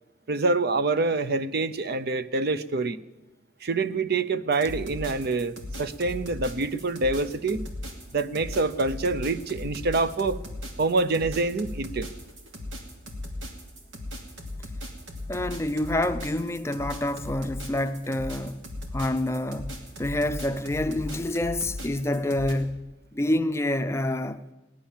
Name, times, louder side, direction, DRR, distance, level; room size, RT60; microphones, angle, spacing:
voice 1, 0.3-3.0 3.6-7.7 8.1-10.4 10.8-12.1, right 3 dB, 55° right, 0.6 m, -26 dB
sound 1, 4.5-22.5, left 1 dB, 90° right, 2.7 m, -38 dB
voice 2, 15.3-18.7 18.9-24.4, left 1 dB, 15° left, 0.5 m, -28 dB
17.5 x 11.5 x 7.2 m
head